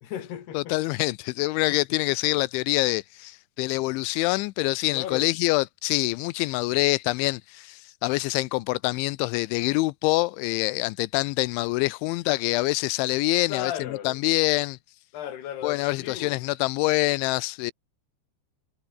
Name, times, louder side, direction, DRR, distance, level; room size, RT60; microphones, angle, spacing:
voice 1, 0.0-0.8 1.7-2.0 4.9-5.3 13.5-14.2 15.1-16.4, left 10 dB, 65° left, 4.6 m, -35 dB
voice 2, 0.5-13.7 14.1-14.8 15.6-17.7, left 21 dB, 90° left, 3.1 m, -25 dB
omnidirectional pair, 5.3 m